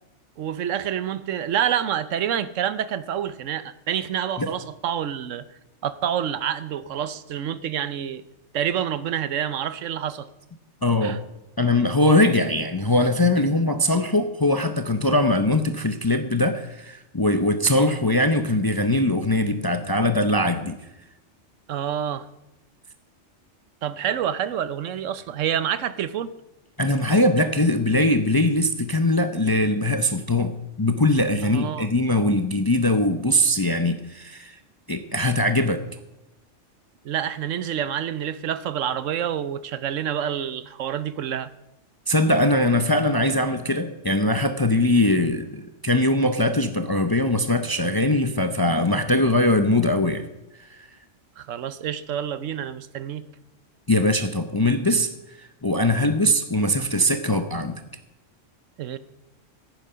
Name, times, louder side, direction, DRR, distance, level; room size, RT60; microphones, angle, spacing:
voice 1, 0.4-8.2 8.5-10.3 11.0-11.2 21.7-22.3 23.8-26.3 31.4-31.9 37.0-41.5 51.4-53.2 58.8-59.0, right 9 dB, 85° right, 15 dB, 1.1 m, -28 dB
voice 2, 10.8-11.2 11.6-20.8 26.8-34.6 34.9-35.8 42.1-50.3 50.6-50.9 53.9-55.1 55.4-57.8, left 1 dB, 25° left, 8 dB, 0.6 m, -21 dB
15.5 x 9.2 x 5.6 m, 0.94 s
omnidirectional pair, 1.3 m